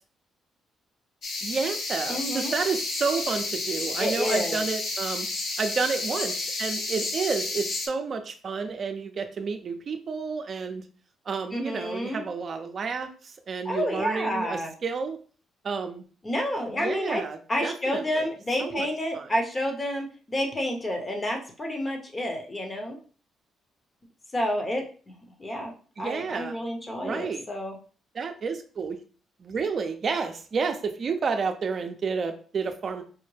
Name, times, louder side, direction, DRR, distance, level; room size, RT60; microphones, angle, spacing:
sound 1, 1.2-7.9, left 2 dB, 65° left, 1.0 m, -31 dB
voice 1, 1.4-5.3 5.6-10.8 11.3-15.2 15.6-16.0 16.7-18.3 18.6-18.9 19.1-19.3 26.0-26.6 27.0-27.4 28.1-29.0 29.4-33.0, right 5 dB, 50° right, 7 dB, 0.5 m, -30 dB
voice 2, 2.1-2.5 4.0-4.6 11.5-12.2 13.6-14.7 16.2-17.2 17.5-23.0 24.3-24.8 25.4-25.7 26.0-27.7, equal, 25° left, 3 dB, 0.9 m, -29 dB
4.8 x 2.1 x 3.2 m, 0.40 s
cardioid pair, 90°, 0 cm